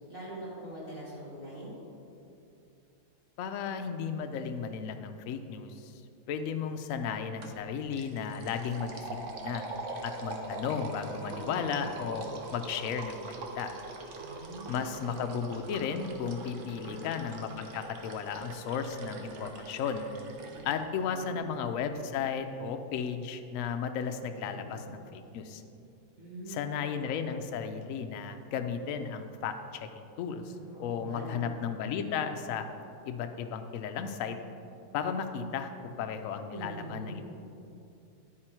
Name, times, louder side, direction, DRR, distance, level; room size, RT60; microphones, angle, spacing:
voice 1, 0.1-1.7 6.5-6.9 11.2-11.8 14.2-14.9 16.5-17.0 20.5-21.4 24.4-25.0 26.2-26.7 30.5-31.5 36.5-37.2, right 1 dB, 30° right, -7 dB, 1.8 m, -44 dB
voice 2, 3.4-5.9 6.3-9.6 10.0-12.3 12.5-13.7 14.7-20.1 20.6-24.8 25.1-25.6 26.5-32.7 33.1-34.4 34.9-37.3, left 6 dB, 90° left, 7 dB, 0.7 m, -34 dB
sound 1, 7.4-7.6 7.9-20.8, right 3 dB, 60° right, 0.9 m, -42 dB
9.8 x 4.7 x 4.4 m, 2.7 s
omnidirectional pair, 2.0 m